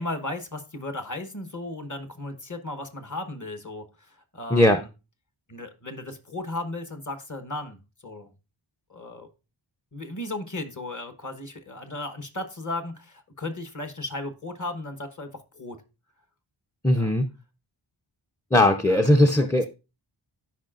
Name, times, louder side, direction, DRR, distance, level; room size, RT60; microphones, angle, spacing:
voice 1, 0.0-4.9 5.5-8.3 8.9-9.3 9.9-15.8 16.9-17.1 18.9-19.0, left 2 dB, 35° left, 8 dB, 1.1 m, -35 dB
voice 2, 16.8-17.3 18.5-19.7, left 1 dB, 5° left, 8 dB, 0.4 m, -19 dB
13.0 x 5.0 x 2.4 m, 0.29 s
wide cardioid pair, 60°, 50 cm